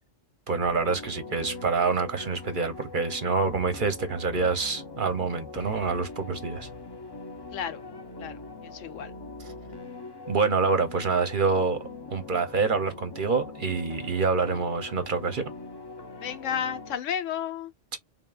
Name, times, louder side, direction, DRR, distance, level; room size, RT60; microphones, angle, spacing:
voice 1, 0.5-6.7 9.4-9.5 10.3-15.5 17.9-18.0, right 4 dB, 50° right, 0.7 m, -27 dB
sound 1, 0.6-17.0, left 3 dB, 35° left, 0.4 m, -42 dB
voice 2, 8.2-9.1 16.2-17.7, left 8 dB, 80° left, 1.1 m, -32 dB
3.8 x 3.5 x 2.3 m
omnidirectional pair, 1.3 m